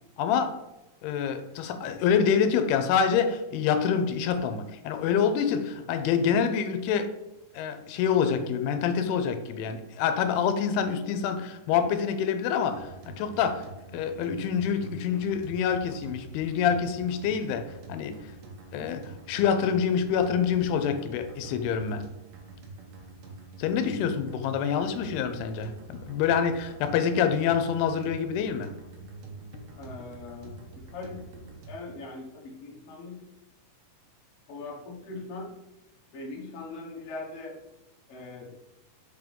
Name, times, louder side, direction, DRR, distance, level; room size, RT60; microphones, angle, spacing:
voice 1, 0.2-0.6 1.0-7.1 7.5-13.7 13.9-18.2 18.7-22.0 23.6-28.7, left 7 dB, 85° left, 9 dB, 2.6 m, -26 dB
sound 1, 12.7-31.9, right 3 dB, 70° right, 2.3 m, -46 dB
voice 2, 23.7-24.1 29.8-33.2 34.5-35.5 36.1-37.6 38.1-38.6, left 3 dB, 60° left, -2 dB, 1.6 m, -41 dB
6.1 x 3.5 x 5.2 m, 0.96 s
omnidirectional pair, 4.5 m